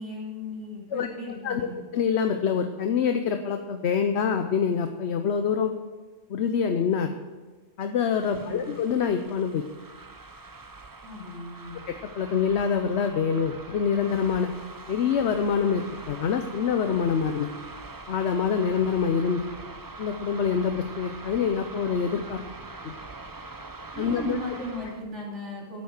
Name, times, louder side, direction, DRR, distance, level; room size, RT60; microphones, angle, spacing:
voice 1, 0.0-1.8 8.3-8.7 11.0-11.8 23.9-25.8, left 1 dB, 80° right, -4 dB, 3.6 m, -37 dB
voice 2, 1.9-5.7 6.3-7.1 7.8-9.6 11.9-14.5 14.9-17.5 18.1-19.5 20.0-22.4 22.8-23.0 24.0-24.4, left 6 dB, 70° left, 7 dB, 1.0 m, -25 dB
sound 1, 8.0-25.0, right 3 dB, 25° right, 0.6 m, -43 dB
10.0 x 8.5 x 6.5 m, 1.3 s
omnidirectional pair, 1.2 m